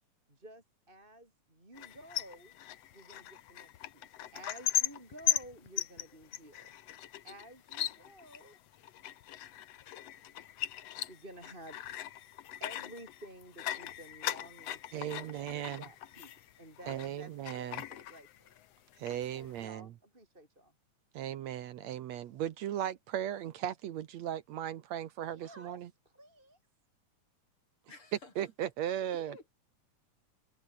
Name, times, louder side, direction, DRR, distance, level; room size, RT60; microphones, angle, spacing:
voice 1, 0.3-2.5 2.9-6.7 7.2-8.6 11.1-11.8 12.6-18.6 19.3-20.7 25.3-26.6, right 1 dB, 15° right, 5.4 m, -53 dB
sound 1, 1.7-17.1 17.5-18.7 18.9-19.6, left 12 dB, 65° left, 2.0 m, -39 dB
voice 2, 14.9-15.8 16.9-17.8 19.0-19.9 21.1-25.9 28.4-29.3, right 11 dB, 70° right, 2.2 m, -37 dB
voice 3, 27.9-28.5 29.0-29.5, left 3 dB, 45° left, 6.9 m, -54 dB
omnidirectional pair, 3.5 m